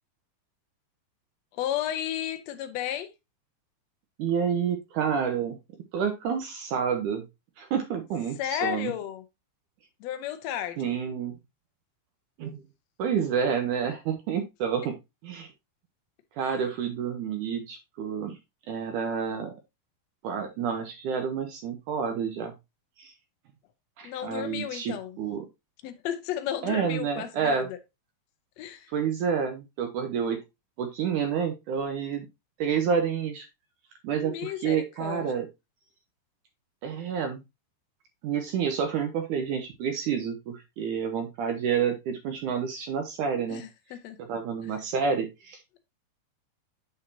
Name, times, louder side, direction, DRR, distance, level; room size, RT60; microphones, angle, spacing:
voice 1, 1.5-3.1 8.4-9.2 10.0-10.9 16.4-16.6 24.0-25.2 25.8-27.8 28.6-28.9 34.2-35.3 43.5-44.2, left 11 dB, 90° left, 1.5 m, -33 dB
voice 2, 4.2-5.6 5.9-7.2 7.6-8.9 10.8-11.3 12.4-12.6 13.0-15.0 15.2-15.5 16.4-18.4 18.7-19.6 20.2-22.5 23.0-23.1 24.0-25.4 26.6-27.7 28.9-30.4 30.8-32.3 32.6-33.5 34.0-35.5 36.8-37.4 38.2-43.6 44.2-45.6, right 7 dB, 70° right, 2.2 m, -29 dB
8.0 x 6.6 x 2.7 m
omnidirectional pair, 4.1 m